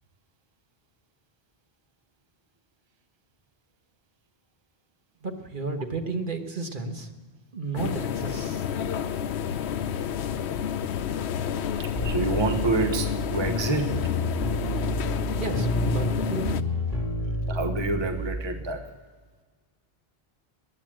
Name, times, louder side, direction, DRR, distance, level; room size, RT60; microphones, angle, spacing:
voice 1, 5.2-7.1 7.5-8.7 15.4-16.6, right 3 dB, 55° right, 5 dB, 1.4 m, -33 dB
sound 1, 7.8-16.6, left 8 dB, 85° left, 0.9 m, -30 dB
voice 2, 11.8-14.0 17.3-18.8, right 2 dB, 25° right, 6 dB, 1.1 m, -28 dB
sound 2, 11.9-18.4, left 1 dB, 35° left, 2.9 m, -29 dB
15.0 x 10.5 x 7.5 m, 1.5 s
omnidirectional pair, 1.1 m